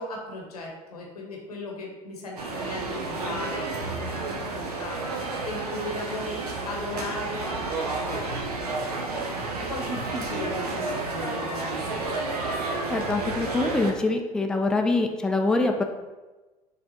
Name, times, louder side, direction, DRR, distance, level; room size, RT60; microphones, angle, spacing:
voice 1, 0.0-4.2 4.5-6.4 6.6-9.0 9.5-12.1, left 1 dB, 85° left, -1 dB, 0.9 m, -37 dB
sound 1, 2.4-13.9, right 3 dB, 85° right, 0.6 m, -31 dB
voice 2, 12.9-15.8, left 2 dB, 5° left, 4 dB, 0.4 m, -24 dB
4.3 x 3.3 x 2.8 m, 1.2 s
hypercardioid pair, 70°, 19 cm